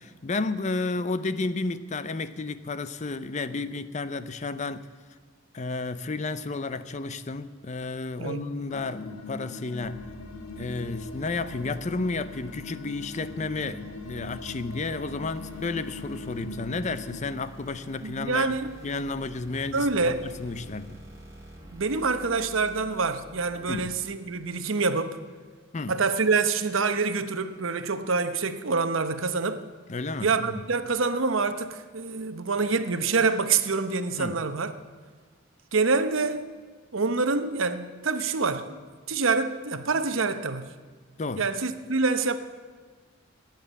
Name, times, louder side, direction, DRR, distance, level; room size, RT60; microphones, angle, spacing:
voice 1, 0.0-4.9 5.5-10.1 10.6-18.5 18.8-21.0 23.7-23.9 25.7-26.0 29.9-30.6 34.2-34.4 41.2-41.5, left 3 dB, 35° left, 0.6 m, -32 dB
sound 1, 8.7-17.2, left 3 dB, 85° left, 1.2 m, -41 dB
sound 2, 9.8-24.0, right 1 dB, 15° right, 2.4 m, -47 dB
voice 2, 18.0-18.7 19.7-20.3 21.7-25.2 25.9-29.6 30.2-34.7 35.7-36.5 36.9-38.8 39.1-40.7 41.4-42.4, right 4 dB, 75° right, 0.9 m, -26 dB
15.5 x 9.2 x 8.1 m
head